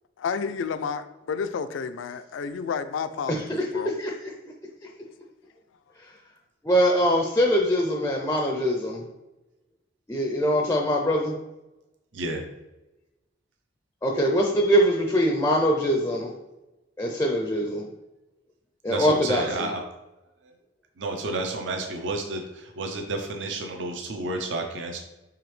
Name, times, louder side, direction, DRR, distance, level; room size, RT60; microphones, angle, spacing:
voice 1, 0.2-3.9, left 6 dB, 85° left, 12 dB, 0.3 m, -31 dB
voice 2, 3.3-3.6 4.0-4.3 6.6-9.0 10.1-11.4 14.0-16.3 17.0-17.8 18.8-19.7, equal, 15° left, 1 dB, 0.4 m, -23 dB
voice 3, 18.9-19.8 21.0-25.0, right 2 dB, 70° right, 3 dB, 0.6 m, -31 dB
4.9 x 3.4 x 3.1 m, 0.99 s
head